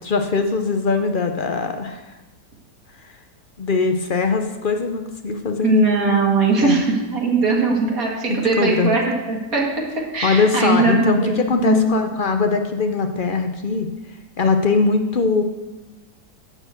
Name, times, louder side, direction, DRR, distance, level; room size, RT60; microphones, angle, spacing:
voice 1, 0.0-2.0 3.6-5.9 6.6-6.9 8.3-8.9 10.2-13.9 14.4-15.4, left 4 dB, 65° left, 6 dB, 0.5 m, -21 dB
voice 2, 5.6-9.7 10.1-11.9, right 3 dB, 55° right, -2 dB, 2.3 m, -20 dB
11.5 x 4.6 x 7.9 m, 1.1 s
omnidirectional pair, 1.8 m